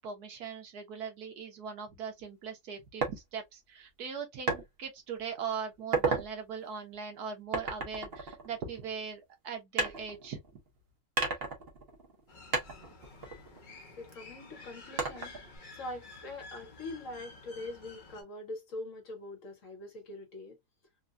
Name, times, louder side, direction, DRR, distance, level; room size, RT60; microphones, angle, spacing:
voice 1, 0.0-10.4, right 6 dB, 75° right, 1.5 m, -40 dB
sound 1, 3.0-3.2 4.5-4.6 5.2-5.4 5.8-6.3 7.5-9.0 9.8-10.7 11.2-12.2 12.5-14.1 15.0-15.6, right 3 dB, 45° right, 1.0 m, -33 dB
sound 2, 12.3-18.2, left 3 dB, 40° left, 0.8 m, -51 dB
voice 2, 14.0-15.4 15.7-20.6, left 2 dB, 55° left, 1.3 m, -43 dB
3.7 x 2.2 x 2.4 m
omnidirectional pair, 1.7 m